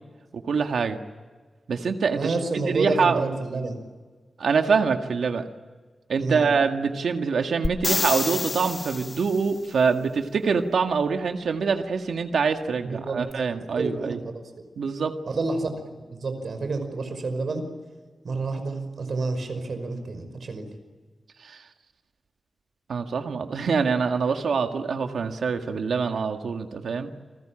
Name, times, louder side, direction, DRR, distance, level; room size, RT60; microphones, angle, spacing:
voice 1, 0.3-1.0 1.7-2.3 2.7-3.2 4.4-5.5 6.1-14.2 14.8-15.1 21.4-21.6 22.9-27.1, right 5 dB, 85° right, 5 dB, 1.8 m, -25 dB
voice 2, 2.2-3.8 6.2-6.5 12.8-13.2 13.7-14.7 15.3-17.7 18.2-20.7, right 3 dB, 60° right, 8 dB, 5.4 m, -29 dB
sound 1, 7.6-9.5 13.3-13.4, left 3 dB, 35° left, 1.2 m, -28 dB
30.0 x 21.0 x 8.9 m, 1.4 s
wide cardioid pair, 125°, 0 cm